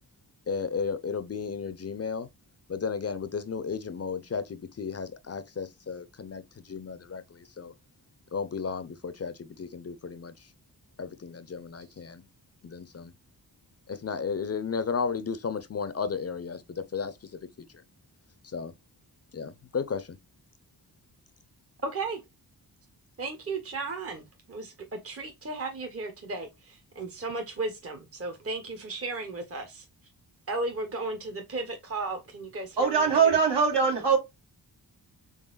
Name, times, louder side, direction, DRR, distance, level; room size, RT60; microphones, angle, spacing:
voice 1, 0.5-2.3 2.7-7.7 8.3-10.3 11.0-12.2 12.6-13.1 13.9-17.1 18.5-18.7 19.3-20.2, left 5 dB, 35° left, 0.6 m, -34 dB
voice 2, 21.8-22.2 23.2-29.9 30.5-33.4, right 3 dB, 35° right, 0.9 m, -35 dB
voice 3, 32.8-34.2, right 6 dB, 70° right, 1.7 m, -22 dB
3.9 x 3.4 x 2.4 m
cardioid pair, 50°, 43 cm